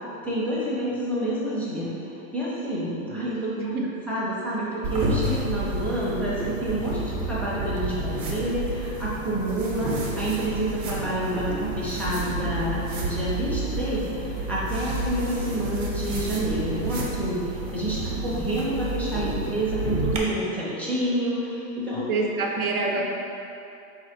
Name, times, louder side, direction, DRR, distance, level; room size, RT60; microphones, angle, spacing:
voice 1, 0.2-3.6 4.1-22.1 22.5-22.6, right 1 dB, 5° left, -7 dB, 0.5 m, -28 dB
voice 2, 3.6-3.9 22.1-23.0, right 3 dB, 80° right, -1 dB, 0.8 m, -26 dB
sound 1, 4.8-20.2, right 2 dB, 45° right, 0.8 m, -30 dB
4.0 x 2.5 x 4.2 m, 2.8 s
hypercardioid pair, 125°, 43 cm